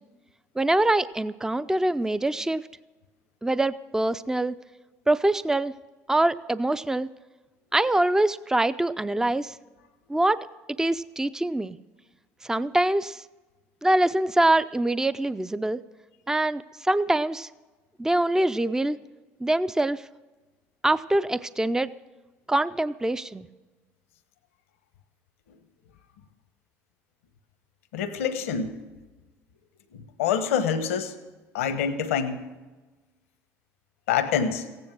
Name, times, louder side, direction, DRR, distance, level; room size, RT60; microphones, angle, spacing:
voice 1, 0.6-2.6 3.4-4.6 5.1-5.7 6.1-7.1 7.7-9.6 10.1-10.5 10.8-11.8 12.4-13.2 13.8-15.8 16.3-17.5 18.0-19.0 19.4-20.0 20.8-21.9 22.5-23.5, right 1 dB, 10° right, 14 dB, 0.5 m, -24 dB
voice 2, 27.9-28.7 29.9-31.1 31.5-32.5 34.1-34.7, left 7 dB, 85° left, 9 dB, 1.1 m, -26 dB
15.5 x 9.7 x 6.2 m, 1.2 s
hypercardioid pair, 65°, 7 cm